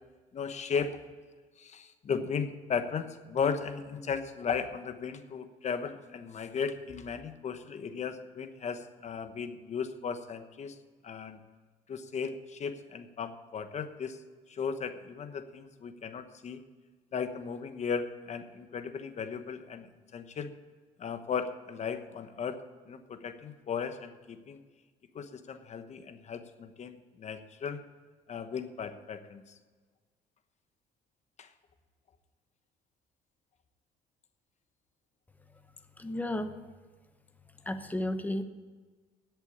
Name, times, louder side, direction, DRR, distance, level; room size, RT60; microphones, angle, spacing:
voice 1, 0.3-1.0 1.6-10.8 11.0-11.4 11.9-14.2 14.5-16.6 17.1-20.5 21.0-22.6 22.9-24.6 25.1-27.8 28.3-29.5 31.4-31.5, left 6 dB, 40° left, 9 dB, 1.1 m, -36 dB
voice 2, 36.0-36.5 37.7-38.4, left 1 dB, 10° left, 9 dB, 1.0 m, -32 dB
10.5 x 8.2 x 8.7 m, 1.4 s
cardioid pair, 110°, 17 cm